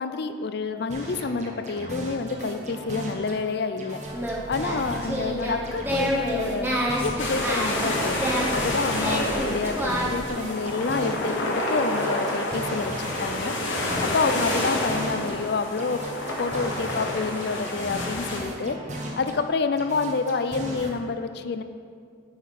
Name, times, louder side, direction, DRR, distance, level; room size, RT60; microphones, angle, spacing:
voice 1, 0.0-4.0 4.5-12.9 13.2-13.5 14.0-16.0 16.4-21.6, left 4 dB, 55° left, 9 dB, 0.4 m, -28 dB
sound 1, 0.9-3.4 3.8-7.4 7.8-11.4 11.8-15.4 15.8-19.4 19.8-20.9, equal, 35° right, 1.0 m, -37 dB
Singing, 4.0-10.3, equal, 10° right, 0.9 m, -29 dB
sound 2, 7.2-18.4, left 1 dB, 80° left, 1.4 m, -29 dB
7.7 x 5.7 x 6.5 m, 2.2 s
head